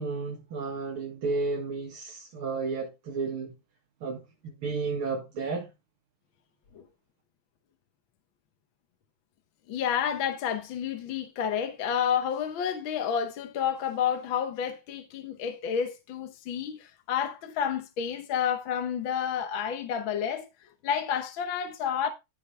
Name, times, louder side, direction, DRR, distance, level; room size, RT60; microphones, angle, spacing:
voice 1, 0.0-3.5 4.0-5.7, right 4 dB, 80° right, 3.0 m, -32 dB
voice 2, 9.7-20.5 20.8-22.1, left 8 dB, 70° left, 1.8 m, -30 dB
14.5 x 5.4 x 3.4 m
omnidirectional pair, 2.3 m